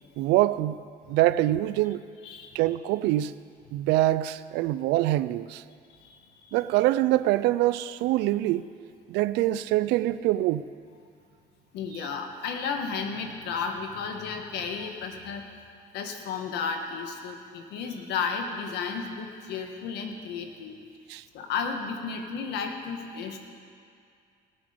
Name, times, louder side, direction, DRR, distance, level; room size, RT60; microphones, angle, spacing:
voice 1, 0.2-2.0 2.5-3.3 3.7-5.6 6.5-8.7 9.1-10.6 21.1-21.2, right 15 dB, 90° right, 0.4 m, -24 dB
voice 2, 2.2-2.6 5.9-6.6 11.7-15.4 15.9-20.8 21.3-23.4, left 5 dB, 85° left, 1.5 m, -33 dB
19.0 x 8.6 x 5.1 m
cardioid pair, 110°, 17 cm